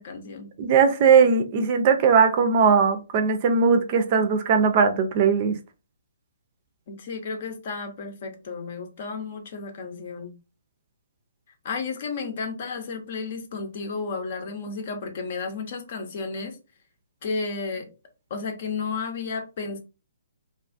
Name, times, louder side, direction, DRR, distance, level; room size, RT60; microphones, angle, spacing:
voice 1, 0.0-0.5 6.9-10.3 11.6-16.6 17.2-17.8 18.3-19.8, left 4 dB, 50° left, 0.7 m, -32 dB
voice 2, 0.6-5.5, right 6 dB, 40° right, 0.4 m, -19 dB
2.4 x 2.3 x 2.5 m
hypercardioid pair, 140°, 0 cm